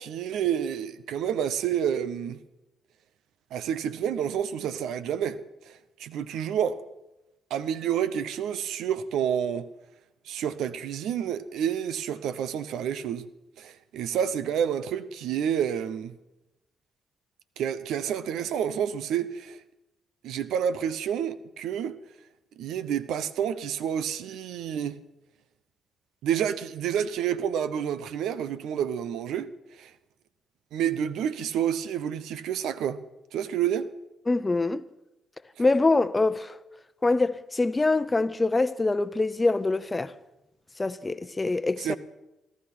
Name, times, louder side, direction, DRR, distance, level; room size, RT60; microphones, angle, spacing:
voice 1, 0.0-2.4 3.5-5.4 5.7-6.8 7.5-9.7 10.3-13.3 13.6-16.2 17.6-19.6 20.2-22.0 22.6-25.0 26.2-29.5 29.8-29.9 30.7-33.0 33.3-33.9 41.8-42.0, right 9 dB, 70° right, 0.8 m, -29 dB
voice 2, 34.3-34.8 35.6-36.6 37.0-40.1 40.8-42.0, left 3 dB, 25° left, 0.8 m, -24 dB
17.5 x 12.5 x 6.1 m
hypercardioid pair, 50°, 0 cm